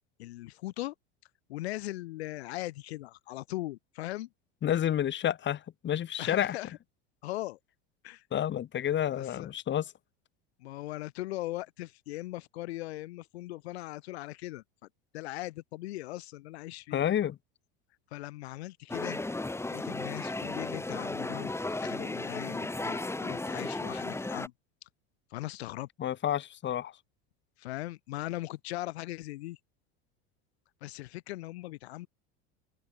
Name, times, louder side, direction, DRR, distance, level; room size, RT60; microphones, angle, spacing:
voice 1, 0.2-0.9 1.5-4.3 6.2-6.7 7.2-7.6 8.0-8.2 9.1-9.5 10.6-14.6 15.1-17.0 18.1-19.2 19.7-24.5 25.3-25.9 27.6-29.6 30.8-32.1, left 17 dB, 90° left, 3.7 m, -39 dB
voice 2, 4.6-6.6 8.3-9.8 16.9-17.4 26.0-26.9, left 10 dB, 35° left, 5.8 m, -29 dB
sound 1, 18.9-24.5, left 2 dB, 10° left, 6.7 m, -35 dB
open air
supercardioid pair, 125°, 31 cm